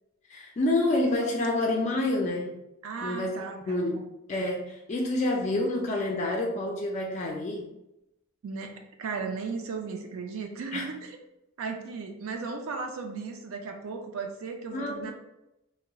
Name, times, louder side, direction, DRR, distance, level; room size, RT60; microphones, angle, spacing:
voice 1, 0.3-2.6 3.0-4.0 4.3-7.7 10.7-10.9 14.7-15.1, left 2 dB, 35° left, 0 dB, 0.3 m, -28 dB
voice 2, 2.8-4.0 8.4-11.2 11.6-15.1, right 4 dB, 85° right, 4 dB, 0.4 m, -36 dB
3.7 x 2.0 x 2.2 m, 0.89 s
head